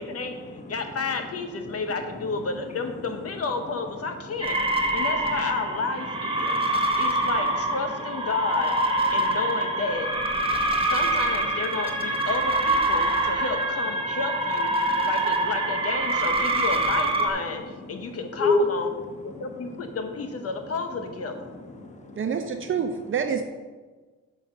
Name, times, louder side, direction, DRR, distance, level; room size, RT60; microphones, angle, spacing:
voice 1, 0.0-4.6 4.9-6.6 7.0-8.8 9.1-10.1 10.9-14.7 15.0-18.9 19.2-21.5, left 4 dB, 50° left, 6 dB, 1.0 m, -31 dB
sound 1, 4.4-17.3, right 1 dB, 20° right, 1.2 m, -25 dB
voice 2, 6.4-7.3 10.5-10.9 14.8-15.1 18.4-18.6 21.8-22.2, left 5 dB, 25° left, 4 dB, 1.1 m, -29 dB
voice 3, 22.2-23.4, right 7 dB, 45° right, 6 dB, 0.6 m, -27 dB
6.3 x 5.6 x 6.3 m, 1.4 s
cardioid pair, 90°, 30 cm